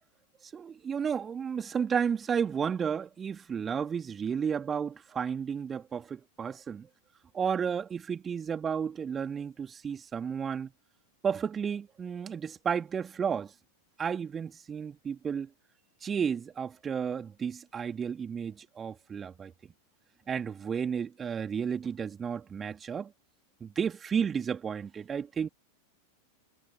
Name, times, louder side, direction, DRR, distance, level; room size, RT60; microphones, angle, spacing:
voice 1, 0.5-6.9 7.3-10.7 11.2-13.5 14.0-15.5 16.0-19.5 20.3-23.1 23.6-25.5, right 7 dB, 20° right, 3.1 m, -32 dB
figure-of-eight pair, 90°, 0 cm